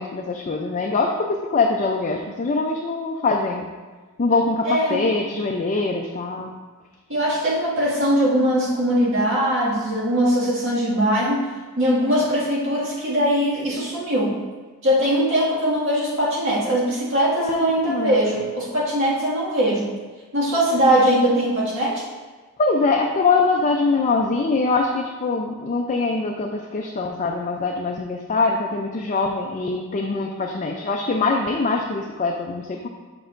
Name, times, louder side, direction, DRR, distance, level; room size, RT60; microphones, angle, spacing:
voice 1, 0.0-3.7 4.2-6.5 17.4-18.2 22.6-32.9, left 3 dB, 35° left, 1 dB, 0.4 m, -23 dB
voice 2, 4.7-5.0 7.1-11.4 11.8-14.4 14.8-19.9 20.3-22.0, equal, 60° right, -7 dB, 1.9 m, -21 dB
6.8 x 6.3 x 2.5 m, 1.3 s
head